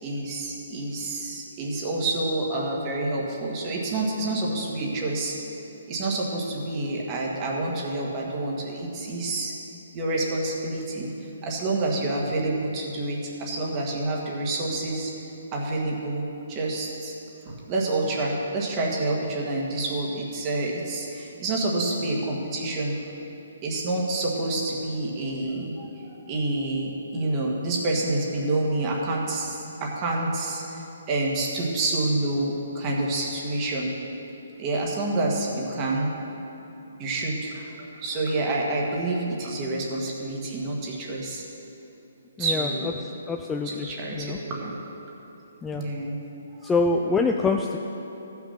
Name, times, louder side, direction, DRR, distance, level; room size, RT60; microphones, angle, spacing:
voice 1, 0.0-5.3 5.9-9.5 9.9-11.1 11.4-15.1 15.5-17.1 17.4-22.9 23.6-25.9 26.3-30.8 31.1-33.9 34.6-36.1 37.0-41.4 42.4-43.0 43.6-44.8 45.7-46.2 46.6-46.7, right 2 dB, 25° right, -2 dB, 1.6 m, -28 dB
voice 2, 42.4-42.7 43.0-43.9 44.1-44.4 45.6-45.8 46.6-47.8, left 3 dB, 10° left, 2 dB, 0.3 m, -25 dB
14.0 x 6.0 x 5.8 m, 3.0 s
hypercardioid pair, 160°, 0 cm